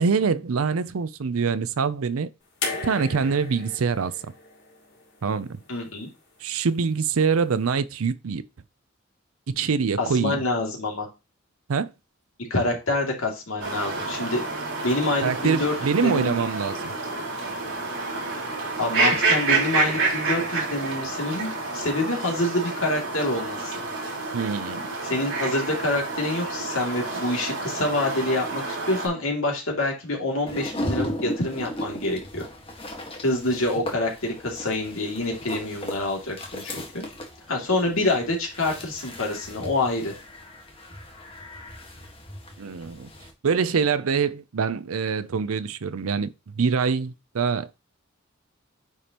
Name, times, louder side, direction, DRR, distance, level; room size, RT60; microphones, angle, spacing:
voice 1, 0.0-2.3 2.8-4.3 5.2-5.6 6.4-8.4 9.5-10.4 11.7-11.9 15.2-16.9 24.3-24.9 37.7-37.8 42.6-43.1 43.4-47.8, right 5 dB, 85° right, 0.5 m, -25 dB
sound 1, 2.6-5.8 7.0-7.1, left 4 dB, 55° left, 3.1 m, -35 dB
voice 2, 5.7-6.1 10.0-11.1 12.5-14.4 14.8-15.7 16.0-16.4 18.8-23.7 25.1-32.4 33.2-37.0 37.5-40.1, left 2 dB, 80° left, 2.6 m, -26 dB
sound 2, 13.6-29.1, right 3 dB, 65° right, 4.5 m, -28 dB
sound 3, 30.5-43.3, left 1 dB, 25° left, 1.5 m, -37 dB
9.4 x 5.1 x 3.0 m
head